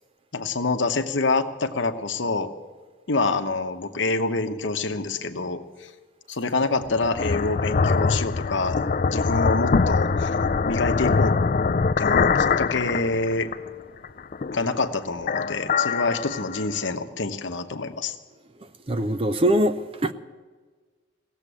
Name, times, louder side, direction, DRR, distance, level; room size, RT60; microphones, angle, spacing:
voice 1, 0.3-2.5 3.1-5.9 6.3-10.4 10.7-11.3 12.0-13.5 14.5-18.1, left 3 dB, 65° left, 0.9 m, -26 dB
sound 1, 6.8-13.7 14.0-14.8 15.2-16.9, left 4 dB, 40° left, 0.4 m, -23 dB
voice 2, 18.9-20.1, right 1 dB, 25° right, 0.5 m, -22 dB
17.0 x 7.4 x 9.8 m
head